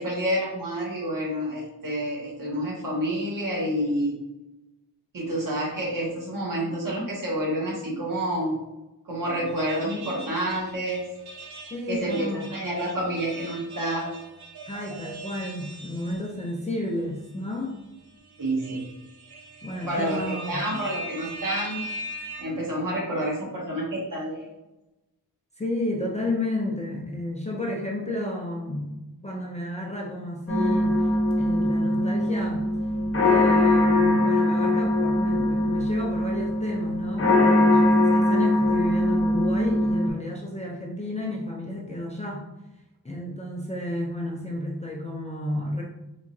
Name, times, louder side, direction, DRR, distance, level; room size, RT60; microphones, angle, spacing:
voice 1, 0.0-4.2 5.1-8.6 9.0-11.0 11.9-12.3 12.5-14.1 18.4-18.8 19.9-22.0 22.4-24.5, right 1 dB, 60° right, -4 dB, 1.3 m, -28 dB
sound 1, 9.5-16.5 17.0-17.1 18.1-22.4, right 1 dB, 85° right, 0.7 m, -40 dB
voice 2, 11.7-12.5 14.7-17.8 19.6-20.6 25.6-28.9 29.2-31.1 31.4-32.7 33.2-42.4 43.0-45.8, left 1 dB, 20° left, -3 dB, 0.4 m, -32 dB
sound 2, 30.5-40.1, left 1 dB, 35° left, 0.8 m, -22 dB
3.7 x 3.0 x 2.6 m, 0.96 s
wide cardioid pair, 165°, 38 cm